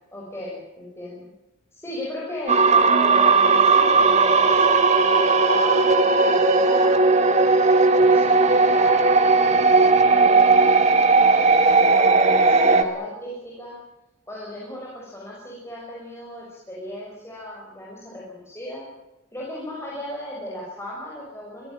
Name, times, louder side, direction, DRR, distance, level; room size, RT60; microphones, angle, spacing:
voice 1, 0.1-1.2 1.7-7.6 7.9-9.4 10.1-10.8 11.8-13.8 14.3-18.8 19.3-21.7, left 1 dB, 10° left, -5 dB, 6.4 m, -35 dB
sound 1, 2.5-12.8, right 3 dB, 35° right, 1.9 m, -17 dB
24.0 x 17.5 x 9.1 m, 0.96 s
head